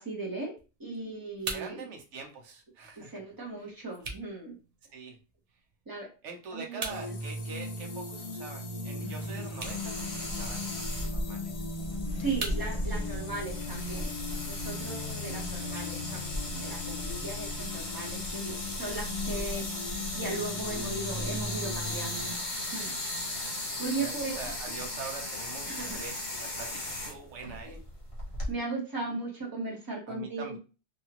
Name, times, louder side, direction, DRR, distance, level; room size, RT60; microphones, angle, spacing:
voice 1, 0.0-1.9 3.0-4.6 5.9-6.1 6.5-7.2 12.1-14.1 14.5-22.3 22.7-22.9 23.8-24.4 24.7-24.8 25.7-26.0 27.6-27.7 28.5-30.6, right 3 dB, 20° right, -1 dB, 0.8 m, -37 dB
sound 1, 0.5-16.6, right 3 dB, 50° right, 0.4 m, -46 dB
voice 2, 1.5-3.1 3.6-3.7 4.9-5.2 6.2-10.7 11.1-11.7 16.1-16.2 24.0-27.8 30.1-30.6, right 5 dB, 70° right, 2 dB, 1.1 m, -44 dB
sound 2, 6.9-22.3, left 2 dB, 80° left, 0.3 m, -38 dB
sound 3, 9.6-28.5, left 1 dB, 30° left, 0.8 m, -36 dB
2.9 x 2.4 x 2.8 m, 0.32 s
omnidirectional pair, 1.3 m